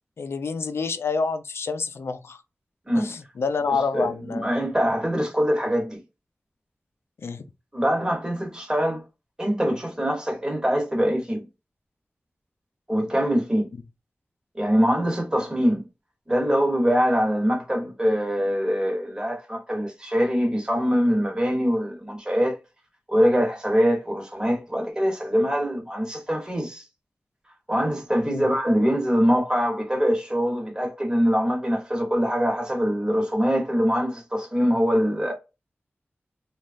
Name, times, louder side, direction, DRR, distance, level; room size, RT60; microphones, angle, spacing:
voice 1, 0.2-2.4 2.9-4.5 7.2-7.4 28.3-28.5, left 4 dB, 85° left, 0.4 m, -28 dB
voice 2, 3.7-6.0 7.7-9.0 9.4-11.5 12.9-13.7 14.5-15.8 16.3-22.6 23.1-26.8 27.7-35.3, equal, 20° right, 1.0 m, -23 dB
3.1 x 2.3 x 2.5 m
wide cardioid pair, 100°, 4 cm